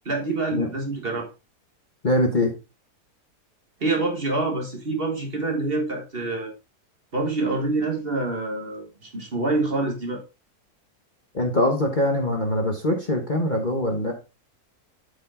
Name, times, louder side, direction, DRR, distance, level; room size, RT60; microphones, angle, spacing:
voice 1, 0.0-1.3 3.8-6.5 7.1-10.2, right 2 dB, 35° right, 2 dB, 1.6 m, -26 dB
voice 2, 2.0-2.5 11.3-14.1, left 1 dB, 30° left, 2 dB, 1.2 m, -23 dB
8.3 x 5.1 x 3.7 m, 0.28 s
omnidirectional pair, 1.7 m